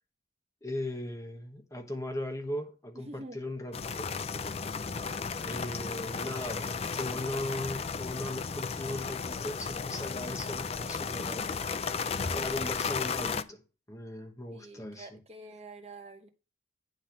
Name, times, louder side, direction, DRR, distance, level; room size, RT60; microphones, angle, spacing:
voice 1, 0.6-4.1 5.4-11.5 12.3-15.2, left 1 dB, 15° left, 1.1 m, -38 dB
voice 2, 3.1-3.4 14.5-16.3, right 2 dB, 35° right, 0.9 m, -47 dB
sound 1, 3.7-13.4, left 5 dB, 30° left, 0.4 m, -34 dB
10.0 x 3.9 x 5.9 m
head